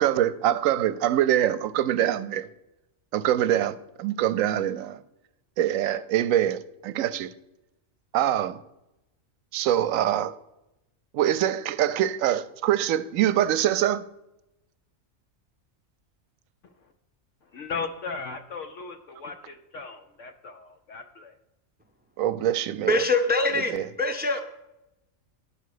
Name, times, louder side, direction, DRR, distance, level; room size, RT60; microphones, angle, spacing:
voice 1, 0.0-2.5 3.1-5.0 5.6-7.3 8.1-8.6 9.5-10.3 11.1-14.0 22.2-23.0 23.7-23.9, right 11 dB, 80° right, 1.0 m, -24 dB
voice 2, 17.5-21.3, left 4 dB, 70° left, 1.0 m, -37 dB
voice 3, 22.8-24.4, left 2 dB, 10° right, 0.5 m, -24 dB
10.5 x 5.1 x 6.6 m
omnidirectional pair, 1.4 m